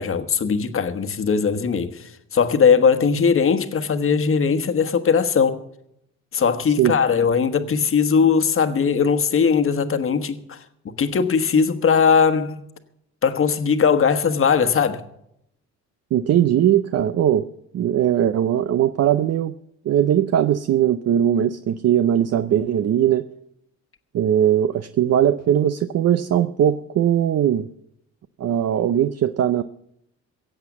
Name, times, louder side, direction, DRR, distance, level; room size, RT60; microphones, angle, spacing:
voice 1, 0.0-2.0 2.3-5.6 6.3-10.6 11.0-12.6 13.2-15.0, left 6 dB, 45° left, 1.3 m, -19 dB
voice 2, 16.1-17.5 17.7-19.5 19.8-23.2 24.1-27.7 28.4-29.6, right 10 dB, 55° right, 0.6 m, -19 dB
16.5 x 7.9 x 7.1 m
cardioid pair, 90°, 30 cm